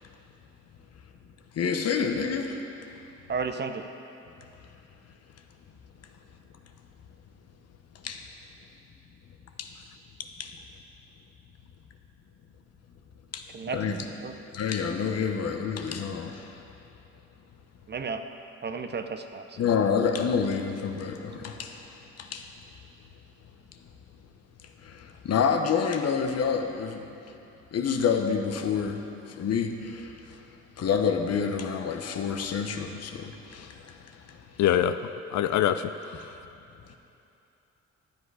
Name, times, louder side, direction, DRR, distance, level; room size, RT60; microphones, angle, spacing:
voice 1, 1.5-2.6 8.0-8.2 9.6-9.7 10.4-10.5 13.3-13.4 13.7-14.0 14.5-16.6 19.6-22.4 24.8-27.2 27.7-30.4 30.8-34.4 36.9-37.0, left 6 dB, 55° left, 5 dB, 1.0 m, -28 dB
voice 2, 3.3-3.8 13.5-14.3 17.9-18.2 18.6-19.4, right 5 dB, 35° right, 7 dB, 0.7 m, -33 dB
voice 3, 34.6-35.0 35.3-35.9, left 11 dB, 70° left, 10 dB, 0.4 m, -23 dB
12.0 x 8.0 x 4.8 m, 2.8 s
cardioid pair, 90°, 30 cm